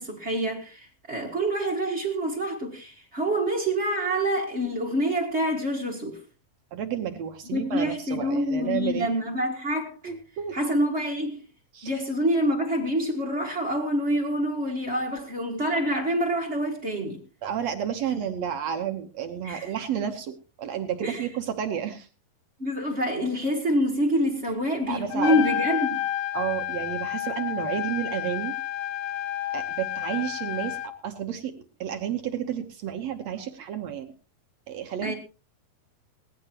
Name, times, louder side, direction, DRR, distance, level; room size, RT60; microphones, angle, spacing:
voice 1, 0.0-6.2 7.5-10.1 10.5-11.4 11.8-17.2 18.1-18.2 19.4-19.7 21.0-21.3 22.6-26.0 33.4-33.5 35.0-35.1, equal, 35° right, 1.1 m, -26 dB
voice 2, 6.7-9.1 10.0-10.6 11.7-11.9 17.4-22.1 24.9-25.4 26.3-28.5 29.5-34.1 34.7-35.1, right 9 dB, 65° right, 1.7 m, -31 dB
Trumpet, 25.1-30.9, left 12 dB, 70° left, 2.5 m, -30 dB
19.0 x 16.0 x 3.0 m
omnidirectional pair, 4.3 m